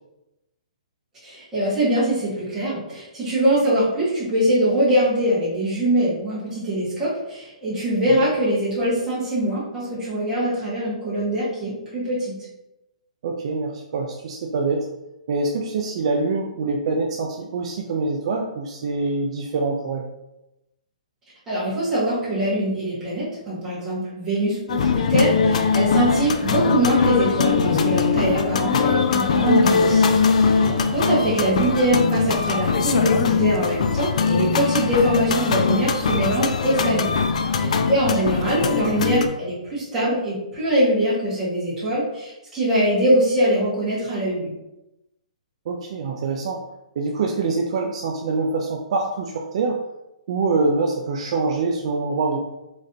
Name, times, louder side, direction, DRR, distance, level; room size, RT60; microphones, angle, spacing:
voice 1, 1.2-12.3 21.5-30.1 30.4-37.1 37.5-44.5, right 1 dB, 10° right, -9 dB, 1.4 m, -22 dB
voice 2, 13.2-14.9 15.3-20.0 25.9-26.1 30.6-30.9 37.6-37.9 45.7-46.6 47.0-49.8 50.3-52.4, right 3 dB, 50° right, 1 dB, 0.4 m, -25 dB
sound 1, 24.7-39.3, left 5 dB, 60° left, 0.4 m, -21 dB
3.9 x 3.2 x 2.7 m, 0.93 s
hypercardioid pair, 165°, 4 cm